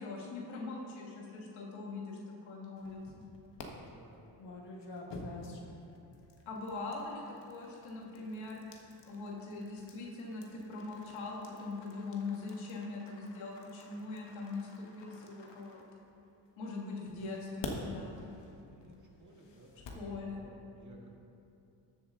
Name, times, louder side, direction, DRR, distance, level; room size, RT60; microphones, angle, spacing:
voice 1, 0.0-3.2 6.5-8.6 9.1-15.8 16.6-18.3 19.9-20.4, left 3 dB, 85° left, -2 dB, 2.0 m, -42 dB
sound 1, 2.8-3.7 4.4-16.4 17.1-20.1, left 3 dB, 65° left, 1.5 m, -49 dB
voice 2, 3.8-4.3 18.7-21.1, right 1 dB, 40° right, -1 dB, 2.0 m, -58 dB
14.0 x 7.2 x 3.8 m, 2.7 s
cardioid pair, 70°, 46 cm